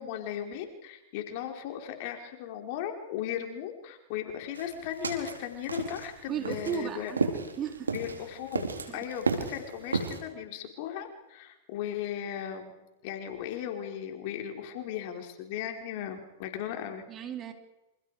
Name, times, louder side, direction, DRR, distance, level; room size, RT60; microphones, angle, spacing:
voice 1, 0.0-7.1 7.9-12.7 13.0-17.0, left 10 dB, 50° left, 4 dB, 4.8 m, -37 dB
sound 1, 4.5-10.2, right 4 dB, 90° right, 3.9 m, -33 dB
voice 2, 6.3-7.9 8.9-9.0 17.1-17.5, right 8 dB, 30° right, 5 dB, 4.1 m, -35 dB
28.0 x 28.0 x 5.1 m, 0.98 s
hypercardioid pair, 105°, 0 cm